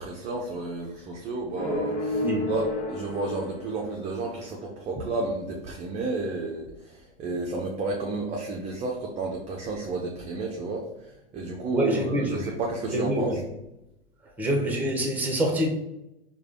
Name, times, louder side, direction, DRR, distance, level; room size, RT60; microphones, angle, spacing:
voice 1, 0.0-13.4, right 3 dB, 20° right, -1 dB, 0.6 m, -32 dB
sound 1, 1.6-4.4, left 1 dB, 75° left, 1.1 m, -31 dB
voice 2, 11.7-12.4 12.9-13.4 14.4-15.7, equal, 5° right, 2 dB, 0.9 m, -26 dB
4.8 x 2.3 x 3.4 m, 0.89 s
figure-of-eight pair, 95°, 33 cm